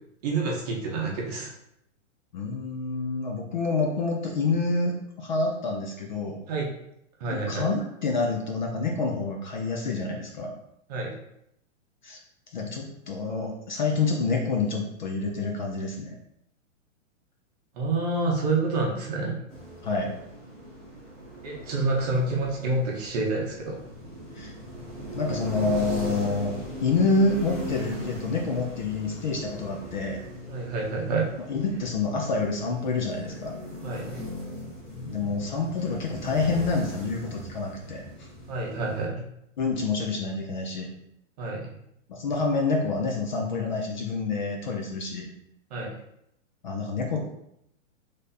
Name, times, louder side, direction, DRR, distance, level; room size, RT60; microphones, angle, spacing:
voice 1, 0.2-1.5 6.5-6.7 7.2-7.6 10.9-11.1 17.7-19.4 21.4-23.8 30.5-31.3 33.8-34.2 38.5-39.2 41.4-41.7 45.7-45.9, right 3 dB, 30° right, -1 dB, 0.7 m, -28 dB
voice 2, 2.3-6.4 7.3-10.5 12.0-12.2 12.5-16.2 19.8-20.1 24.4-24.5 25.2-26.5 26.8-30.2 31.5-33.6 35.0-38.3 39.6-40.9 42.1-45.3 46.6-47.2, left 3 dB, 40° left, 1 dB, 0.4 m, -27 dB
sound 1, 19.5-39.1, equal, ahead, 0.9 m, -39 dB
3.9 x 3.3 x 2.7 m, 0.78 s
hypercardioid pair, 165°, 39 cm